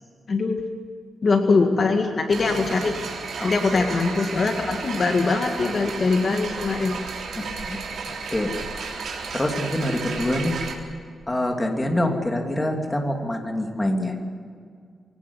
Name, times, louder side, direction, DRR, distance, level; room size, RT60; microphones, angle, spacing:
voice 1, 1.2-2.9 3.4-7.0, left 4 dB, 45° left, 3 dB, 2.0 m, -22 dB
sound 1, 2.3-10.8, right 5 dB, 70° right, 3.5 m, -33 dB
voice 2, 3.4-3.9 7.3-8.5 8.8-9.0 9.3-10.6 11.3-14.1, left 1 dB, 15° left, 2 dB, 2.8 m, -26 dB
23.0 x 18.0 x 8.4 m, 2.1 s
wide cardioid pair, 140°, 0 cm